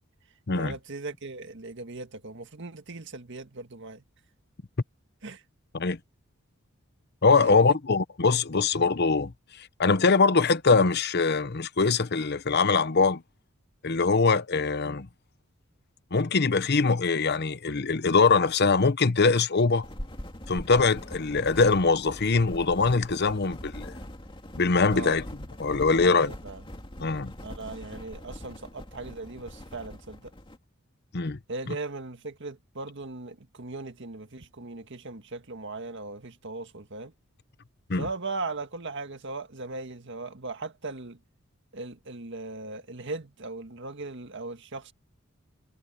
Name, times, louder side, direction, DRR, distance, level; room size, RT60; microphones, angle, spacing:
voice 1, 0.5-4.0 5.2-5.4 7.4-7.8 24.9-25.2 25.8-26.6 27.4-30.3 31.5-37.1 38.0-41.2 41.7-44.9, right 3 dB, 60° right, 1.8 m, -38 dB
voice 2, 7.2-9.3 9.8-13.2 13.8-15.1 16.1-19.9 20.5-23.9 24.6-25.2 25.6-26.3 27.0-27.3 31.1-31.4 31.7-31.8 37.9-38.1, left 4 dB, 55° left, 0.9 m, -23 dB
sound 1, 19.8-30.6, left 1 dB, 25° left, 2.5 m, -42 dB
head